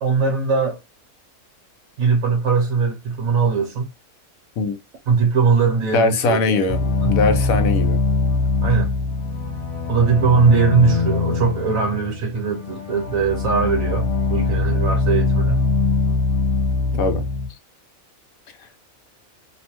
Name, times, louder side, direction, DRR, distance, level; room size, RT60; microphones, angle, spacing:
voice 1, 0.0-0.8 2.0-3.9 5.1-7.2 8.6-8.9 9.9-15.6, right 5 dB, 70° right, 1.2 m, -20 dB
voice 2, 5.9-6.8 7.1-8.0 17.0-17.2, left 3 dB, 80° left, 1.1 m, -20 dB
sound 1, 6.7-17.5, left 3 dB, 40° left, 0.5 m, -22 dB
3.0 x 2.1 x 2.9 m
omnidirectional pair, 1.5 m